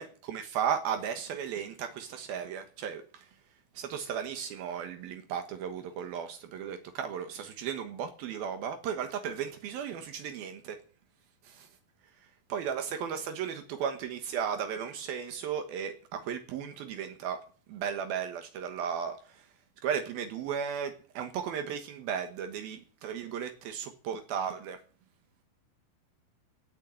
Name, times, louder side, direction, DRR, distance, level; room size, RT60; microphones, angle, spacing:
voice 1, 0.0-3.0 3.8-10.8 11.6-11.7 12.5-17.4 17.7-19.2 19.8-24.8, right 8 dB, 75° right, 3.2 m, -35 dB
18.0 x 9.1 x 7.7 m
omnidirectional pair, 4.3 m